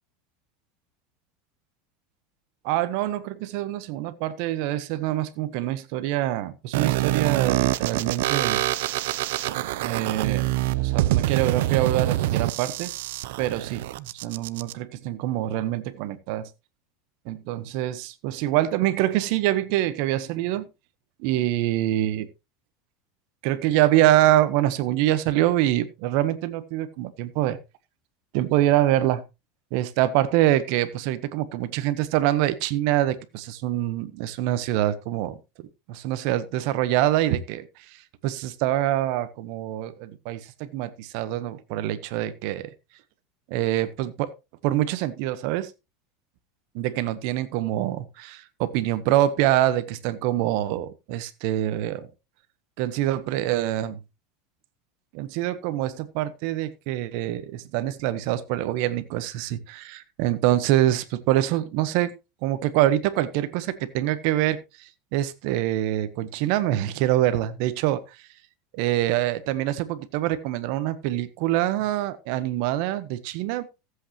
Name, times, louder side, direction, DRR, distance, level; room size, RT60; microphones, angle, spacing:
voice 1, 2.6-8.6 9.8-10.5 10.7-12.9 13.4-16.5 17.2-20.7 21.2-22.3 23.4-27.6 28.3-29.2 29.7-35.4 35.9-42.7 43.5-44.3 44.6-45.7 46.7-52.1 52.8-54.0 55.1-62.1 62.4-68.0 68.7-73.7, right 13 dB, 60° right, 1.1 m, -25 dB
sound 1, 6.7-14.7, right 15 dB, 75° right, 0.5 m, -25 dB
15.0 x 8.0 x 3.0 m
supercardioid pair, 145°, 0 cm